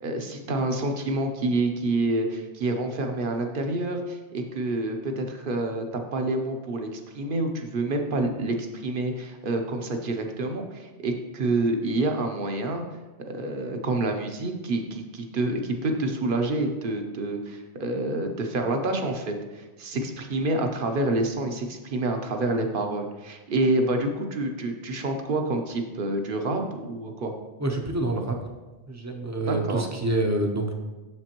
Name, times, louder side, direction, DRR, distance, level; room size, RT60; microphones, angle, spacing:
voice 1, 0.0-12.8 13.3-27.3 29.5-29.9, right 2 dB, 55° right, 4 dB, 0.9 m, -28 dB
voice 2, 27.6-28.4 28.9-30.7, right 2 dB, 20° right, 2 dB, 0.6 m, -27 dB
7.7 x 6.8 x 2.9 m, 1.2 s
omnidirectional pair, 1.1 m